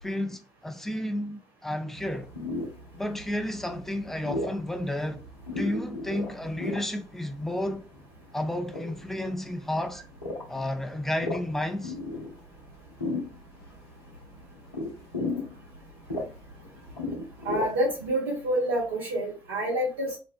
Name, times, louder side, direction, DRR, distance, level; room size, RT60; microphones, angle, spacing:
voice 1, 0.0-2.3 2.9-5.2 5.5-7.9 8.3-10.0 10.5-12.0, left 1 dB, 5° left, 0.5 m, -32 dB
sound 1, 2.0-18.1, left 2 dB, 85° left, 0.6 m, -37 dB
voice 2, 17.4-20.2, right 1 dB, 70° right, 0.8 m, -27 dB
2.5 x 2.1 x 2.4 m
figure-of-eight pair, 45°, 12 cm